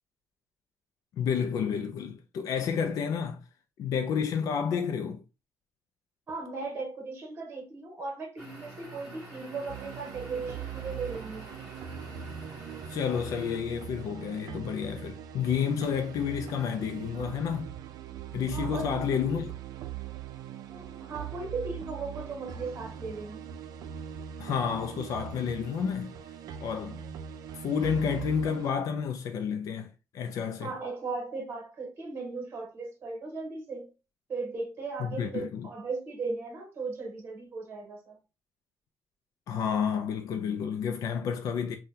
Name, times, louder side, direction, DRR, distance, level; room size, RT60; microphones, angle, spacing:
voice 1, 1.1-3.4 3.8-5.2 12.9-17.7 18.3-19.5 24.4-26.1 26.6-27.0 27.6-30.7 35.0-35.7 39.5-41.8, left 7 dB, 65° left, 0.3 m, -30 dB
voice 2, 6.3-11.5 18.5-19.4 20.7-23.4 30.6-33.9 34.3-38.2, right 3 dB, 35° right, 0.9 m, -37 dB
sound 1, 8.4-13.6, right 2 dB, 5° right, 1.2 m, -47 dB
sound 2, 9.7-28.7, right 9 dB, 80° right, 0.4 m, -41 dB
2.7 x 2.2 x 3.5 m
cardioid pair, 170°, 6 cm